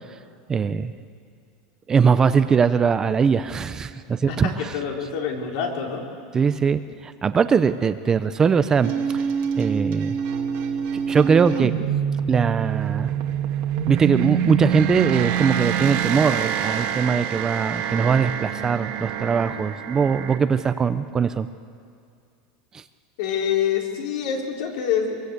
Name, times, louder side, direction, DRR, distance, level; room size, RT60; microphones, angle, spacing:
voice 1, 0.5-0.9 1.9-4.7 6.3-9.2 9.6-10.2 11.1-11.7 12.3-13.1 13.9-21.5 22.7-22.8, right 6 dB, 15° right, 11 dB, 0.6 m, -21 dB
voice 2, 4.3-6.0 23.2-25.2, left 7 dB, 60° left, 1 dB, 4.0 m, -26 dB
sound 1, 8.8-20.4, right 8 dB, 50° right, 1.9 m, -26 dB
24.0 x 23.0 x 8.3 m, 2.3 s
supercardioid pair, 155°, 3 cm